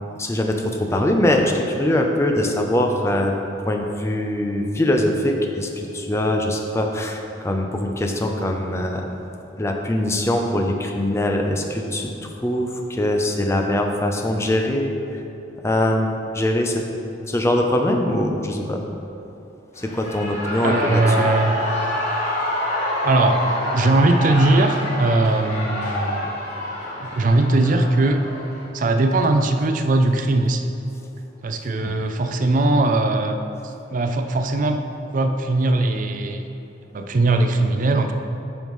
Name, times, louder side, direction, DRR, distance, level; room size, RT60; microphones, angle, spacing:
voice 1, 0.2-3.3 3.7-9.1 9.6-12.1 12.4-14.9 15.6-16.8 17.3-18.8 19.8-21.3 31.8-31.9, left 1 dB, 15° left, 2 dB, 0.5 m, -22 dB
Shout / Cheering, 19.7-28.7, left 1 dB, 40° left, 1.3 m, -27 dB
voice 2, 20.6-21.5 23.0-23.4 23.7-26.3 27.0-28.2 28.7-30.7 31.4-33.4 33.9-34.8 35.1-36.5 36.9-38.1, right 2 dB, 45° right, 6 dB, 0.4 m, -19 dB
9.0 x 5.4 x 3.1 m, 2.8 s
head